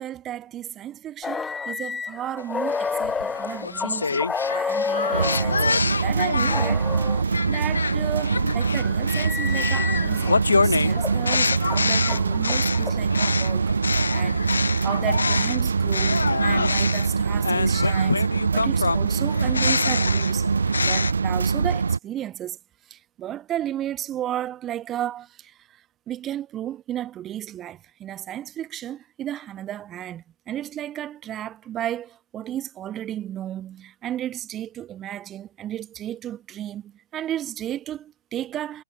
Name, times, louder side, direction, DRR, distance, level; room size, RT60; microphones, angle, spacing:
voice 1, 0.0-4.3 4.5-5.7 6.0-6.9 7.5-13.7 14.1-14.5 14.8-20.5 20.8-22.6 22.9-25.5 26.1-38.8, right 11 dB, 20° right, 1.4 m, -33 dB
sound 1, 1.2-5.8 6.5-7.2 8.0-10.4 10.9-13.3, left 5 dB, 10° left, 0.7 m, -30 dB
sound 2, 2.7-6.8 7.3-15.6 15.9-21.1, left 4 dB, 70° left, 0.3 m, -26 dB
sound 3, 5.1-22.0, right 5 dB, 65° right, 0.3 m, -24 dB
figure-of-eight pair, 125°, 0 cm